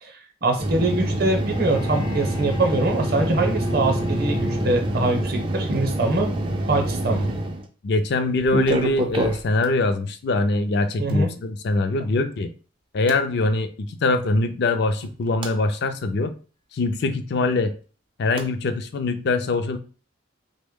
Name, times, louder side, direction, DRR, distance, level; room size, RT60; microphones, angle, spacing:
voice 1, 0.0-6.3 6.7-7.3 11.0-11.3, right 2 dB, 45° right, 0.7 m, -23 dB
sound 1, 0.6-7.7 8.4-9.7 11.1-11.2 13.1-13.2 15.0-15.5 18.4-18.5, right 1 dB, 25° right, 0.3 m, -26 dB
Bowed string instrument, 1.3-5.4, equal, 80° left, 0.8 m, -30 dB
voice 2, 7.8-12.5 12.9-16.3 16.7-17.7 18.2-19.8, left 2 dB, 50° left, 0.4 m, -23 dB
3.3 x 2.1 x 3.5 m
head